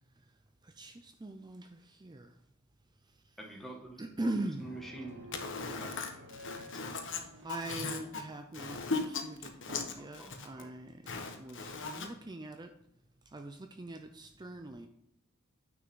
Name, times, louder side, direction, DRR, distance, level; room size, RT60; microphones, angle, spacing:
voice 1, 0.6-2.3 4.0-4.6 7.4-8.8 9.7-12.7 13.3-14.9, right 2 dB, 20° right, 0.5 m, -41 dB
voice 2, 3.4-5.3 5.8-6.0 10.2-10.7, right 2 dB, ahead, 1.8 m, -46 dB
sound 1, 4.6-8.8, equal, 55° right, 1.7 m, -52 dB
voice 3, 5.4-6.1 6.4-7.2 7.7-8.0 8.6-9.0 9.7-9.8 11.1-11.3 11.7-11.9, left 4 dB, 60° left, 1.4 m, -36 dB
9.2 x 6.1 x 3.8 m
head